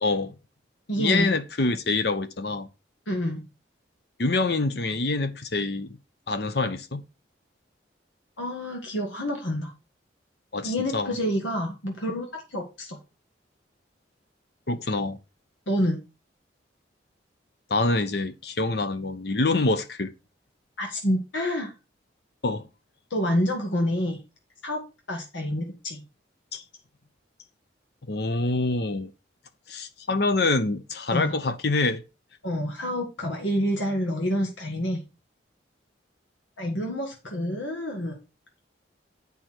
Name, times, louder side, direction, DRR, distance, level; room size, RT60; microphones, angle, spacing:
voice 1, 0.0-0.3 1.0-2.7 4.2-6.0 6.3-7.0 10.5-11.1 14.7-15.2 17.7-20.1 22.4-22.7 26.5-26.6 28.1-29.1 29.7-32.0, left 3 dB, 60° left, 0.9 m, -26 dB
voice 2, 0.9-1.3 3.1-3.5 8.4-9.7 10.6-13.0 15.7-16.0 20.8-21.7 23.1-24.2 24.6-24.8 25.1-26.0 31.1-31.4 32.4-35.0 36.6-38.2, equal, 90° left, 1.8 m, -28 dB
8.3 x 5.5 x 4.5 m
head